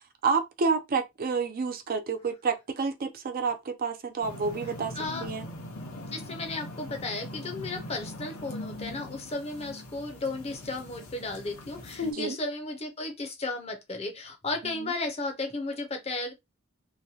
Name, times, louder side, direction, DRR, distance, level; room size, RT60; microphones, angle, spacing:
voice 1, 0.2-4.9 5.2-5.4 12.0-12.4 14.8-14.9, right 5 dB, 40° right, 0.4 m, -29 dB
sound 1, 4.2-12.1, left 2 dB, 80° left, 0.9 m, -40 dB
voice 2, 4.9-5.3 6.1-16.3, left 2 dB, 30° left, 0.6 m, -34 dB
3.0 x 2.2 x 2.7 m
head